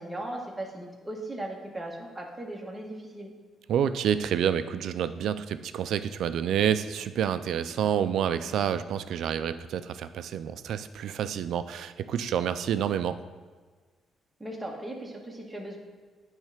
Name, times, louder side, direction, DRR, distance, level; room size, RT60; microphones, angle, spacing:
voice 1, 0.0-3.3 14.4-15.8, right 1 dB, 10° right, 0 dB, 1.3 m, -38 dB
voice 2, 3.7-13.2, right 9 dB, 75° right, 12 dB, 0.3 m, -28 dB
9.2 x 3.2 x 5.0 m, 1.5 s
cardioid pair, 90°, 0 cm